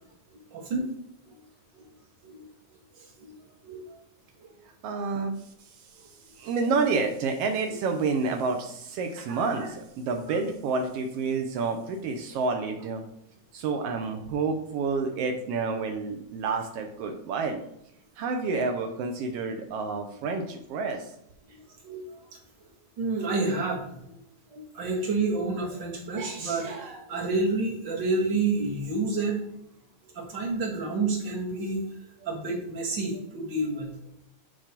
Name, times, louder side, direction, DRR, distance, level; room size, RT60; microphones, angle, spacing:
voice 1, 0.5-0.9 1.7-1.8 2.2-2.5 3.2-3.8 4.4-4.5 9.2-9.7 10.3-10.4 21.8-22.0 23.0-24.0 24.5-29.4 30.1-31.8 32.2-33.9, right 3 dB, 45° right, -1 dB, 1.7 m, -29 dB
voice 2, 4.8-5.4 6.4-13.0 13.5-17.6 18.2-21.1, right 4 dB, 90° right, 4 dB, 1.3 m, -29 dB
9.7 x 4.6 x 2.9 m, 0.77 s
omnidirectional pair, 3.6 m